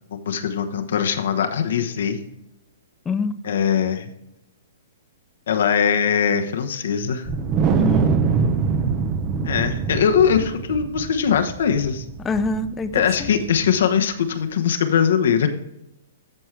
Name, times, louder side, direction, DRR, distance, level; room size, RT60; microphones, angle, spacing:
voice 1, 0.1-2.2 3.4-4.1 5.5-7.3 9.4-12.0 12.9-15.5, left 7 dB, 70° left, 6 dB, 1.0 m, -21 dB
voice 2, 3.1-3.4 7.8-8.1 12.2-13.3, left 3 dB, 15° left, 11 dB, 0.6 m, -25 dB
Wind, 7.3-13.8, right 5 dB, 30° right, 0.8 m, -24 dB
13.0 x 4.6 x 3.3 m, 0.86 s
hypercardioid pair, 130°, 0 cm